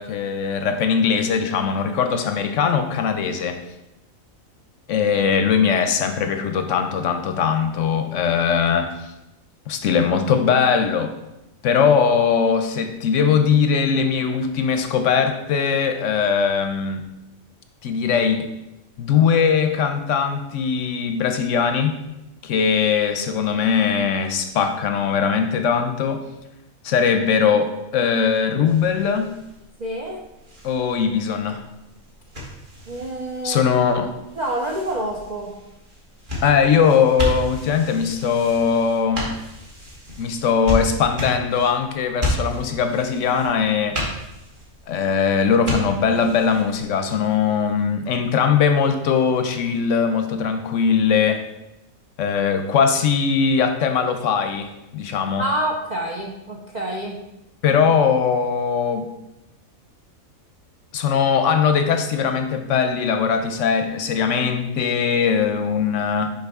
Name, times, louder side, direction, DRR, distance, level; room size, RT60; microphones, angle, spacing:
voice 1, 0.0-3.6 4.9-9.1 9.7-11.1 11.6-17.1 17.8-18.5 19.0-22.0 22.4-26.3 26.8-29.3 30.6-31.6 33.4-34.1 36.4-39.3 40.2-44.0 44.9-51.5 52.2-55.4 57.6-59.1 60.9-66.3, left 6 dB, 70° left, 7 dB, 0.9 m, -20 dB
sound 1, 28.6-46.8, left 1 dB, 35° right, 1.4 m, -33 dB
voice 2, 29.8-30.2 32.9-33.7 34.4-35.5 55.4-57.2, right 1 dB, 55° right, -1 dB, 0.5 m, -27 dB
6.5 x 5.0 x 3.5 m, 0.94 s
omnidirectional pair, 1.5 m